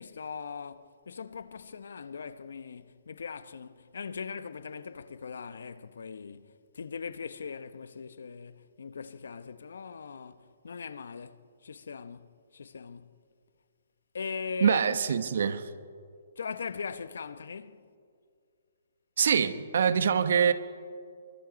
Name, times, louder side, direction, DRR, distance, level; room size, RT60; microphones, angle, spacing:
voice 1, 0.0-13.2 14.1-15.1 16.4-17.9, left 5 dB, 80° left, 1.1 m, -40 dB
voice 2, 14.6-15.7 19.2-20.5, right 7 dB, 60° right, 1.2 m, -24 dB
24.0 x 24.0 x 5.3 m
hypercardioid pair, 170°, 0 cm